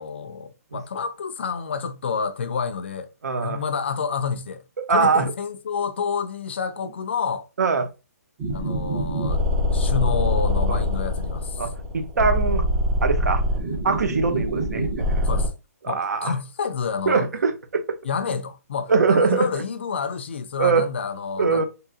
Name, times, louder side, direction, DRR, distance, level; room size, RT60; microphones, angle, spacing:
voice 1, 0.0-3.1 3.4-4.6 4.9-7.5 8.5-9.5 9.7-11.6 15.2-15.5 15.9-17.3 18.0-21.6, left 6 dB, 45° left, 0.4 m, -29 dB
voice 2, 3.2-3.6 4.8-5.3 7.6-7.9 10.7-10.8 11.6-12.7 13.0-13.4 13.8-14.9 15.8-16.3 17.1-18.0 18.9-19.5 20.6-20.9 21.4-21.6, right 4 dB, 75° right, 0.8 m, -22 dB
sound 1, 8.4-15.5, left 1 dB, 15° right, 0.6 m, -24 dB
3.7 x 2.7 x 2.7 m
hypercardioid pair, 175°, 9 cm